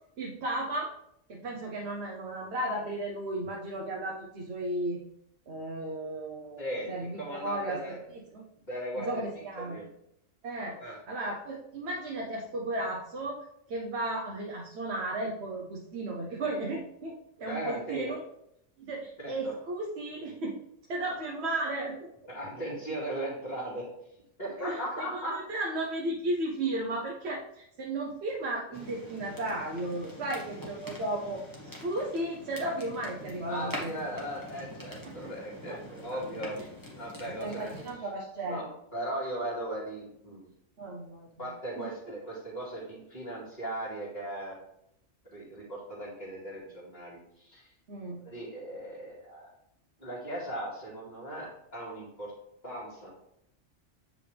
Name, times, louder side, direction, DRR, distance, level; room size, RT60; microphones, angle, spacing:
voice 1, 0.2-0.9 1.3-5.0 5.5-8.0 8.3-8.4 9.0-9.8 10.4-10.8 11.1-17.1 17.4-18.2 18.8-20.6 20.9-22.1 24.6-33.9 35.2-35.3 35.7-35.8 37.2-38.7 40.8-41.3 41.8-41.9 47.9-48.2, right 1 dB, 60° right, -1 dB, 1.2 m, -34 dB
voice 2, 6.6-8.0 8.6-9.9 10.8-11.0 17.5-18.1 19.2-19.6 22.3-23.9 24.4-25.4 33.5-36.6 37.0-37.7 38.4-38.6 38.9-40.4 41.4-44.6 45.2-47.7 48.2-49.5 50.0-52.3 52.6-53.1, right 1 dB, 35° left, -10 dB, 2.5 m, -38 dB
sound 1, 28.7-37.9, left 1 dB, 15° left, 1.6 m, -44 dB
8.3 x 5.2 x 3.4 m, 0.77 s
omnidirectional pair, 1.3 m